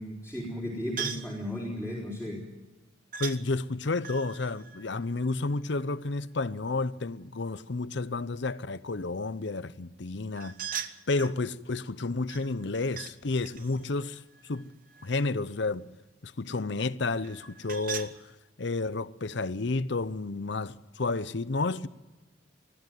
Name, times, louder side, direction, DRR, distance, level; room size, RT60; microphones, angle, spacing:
voice 1, 0.0-2.4, left 1 dB, 5° right, 4.1 m, -35 dB
sound 1, 1.0-1.4 3.1-3.4 4.0-5.8 10.3-11.4 12.3-13.2 13.4-15.3 17.2-18.1, right 7 dB, 40° right, 1.0 m, -40 dB
voice 2, 3.2-10.5 11.1-14.7 15.0-15.8 16.2-18.2 18.6-21.9, left 3 dB, 60° left, 0.7 m, -31 dB
21.0 x 14.0 x 9.2 m
head